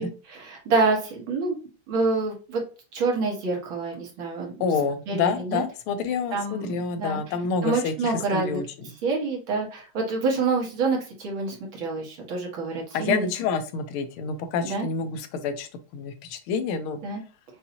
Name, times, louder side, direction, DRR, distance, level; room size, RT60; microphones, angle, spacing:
voice 1, 0.0-1.6 1.9-2.6 2.9-4.5 5.1-5.6 6.3-7.2 7.6-8.6 9.0-13.3 14.6-14.9 17.0-17.2, right 3 dB, 70° right, -1 dB, 2.1 m, -27 dB
voice 2, 4.6-8.6 12.9-17.0, left 5 dB, 80° left, 9 dB, 1.5 m, -28 dB
5.5 x 2.7 x 2.7 m, 0.34 s
omnidirectional pair, 2.3 m